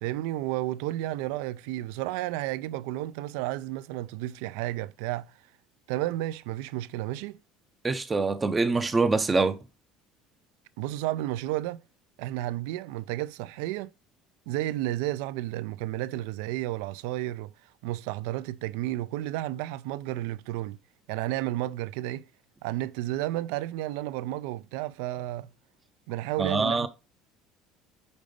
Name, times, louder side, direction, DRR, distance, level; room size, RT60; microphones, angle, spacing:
voice 1, 0.0-5.4 5.9-7.4 10.8-11.8 12.2-13.9 14.5-17.5 17.8-20.8 21.1-22.3 22.6-25.5 26.1-26.9, right 15 dB, 90° right, 0.3 m, -32 dB
voice 2, 7.8-9.6 26.4-26.9, right 3 dB, 15° right, 0.4 m, -24 dB
5.2 x 3.9 x 5.0 m
cardioid pair, 160°, 0 cm